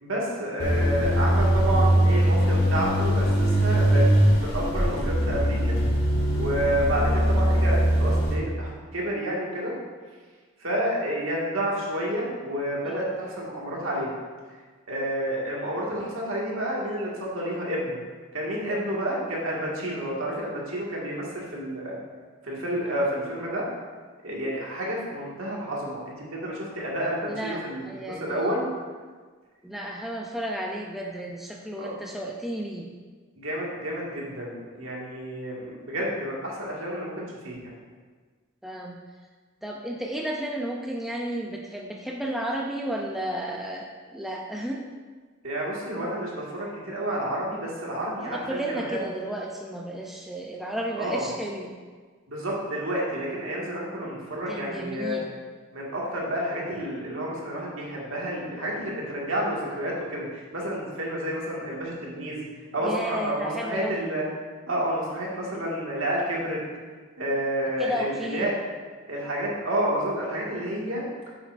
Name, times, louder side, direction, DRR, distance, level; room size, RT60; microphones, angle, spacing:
voice 1, 0.0-4.1 4.4-5.8 6.3-9.7 10.6-14.1 14.9-18.0 18.3-22.0 22.4-23.6 24.2-28.7 31.8-31.9 33.4-37.7 45.4-49.0 50.9-51.3 52.3-55.2 55.7-62.4 62.7-64.2 64.7-66.6 67.2-68.5 69.1-71.3, right 1 dB, 75° right, -4 dB, 1.9 m, -30 dB
sound 1, 0.6-8.3, equal, 50° left, 1.9 m, -21 dB
voice 2, 12.8-13.2 22.6-23.0 27.2-28.5 29.6-32.9 38.6-39.0 39.6-44.8 48.2-51.7 54.5-55.3 62.8-64.1 67.8-68.5, right 1 dB, ahead, -1 dB, 0.4 m, -33 dB
9.3 x 7.2 x 2.6 m, 1.5 s
head